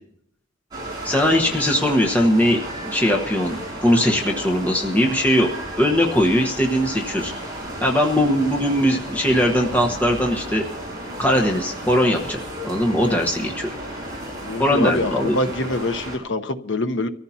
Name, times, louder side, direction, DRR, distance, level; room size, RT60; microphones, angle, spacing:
sound 1, 0.7-16.2, right 1 dB, 20° right, 5.8 m, -33 dB
voice 1, 1.0-5.5 5.8-7.3 7.8-10.6 11.2-13.7 14.6-15.4, equal, 10° left, 0 dB, 1.2 m, -20 dB
voice 2, 14.4-17.1, left 2 dB, 65° left, 8 dB, 1.0 m, -25 dB
24.5 x 14.5 x 2.9 m, 0.67 s
head